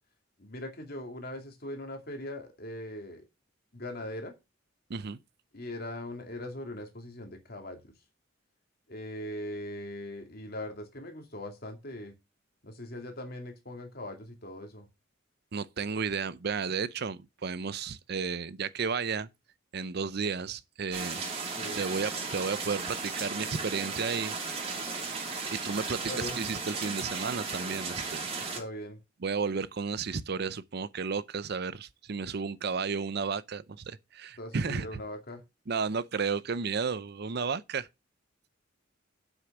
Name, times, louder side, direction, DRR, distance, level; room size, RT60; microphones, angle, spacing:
voice 1, 0.4-3.3 3.7-4.3 5.5-7.9 8.9-12.2 12.6-14.9 21.6-21.8 26.0-26.4 28.4-29.0 34.4-35.4, left 1 dB, 50° left, 2.5 m, -40 dB
voice 2, 15.5-19.3 19.7-21.2 21.8-24.4 25.5-28.5 29.2-34.9 35.7-37.9, right 5 dB, 55° right, 0.6 m, -33 dB
sound 1, 20.9-28.6, right 4 dB, 30° right, 2.8 m, -35 dB
7.9 x 6.3 x 6.0 m
head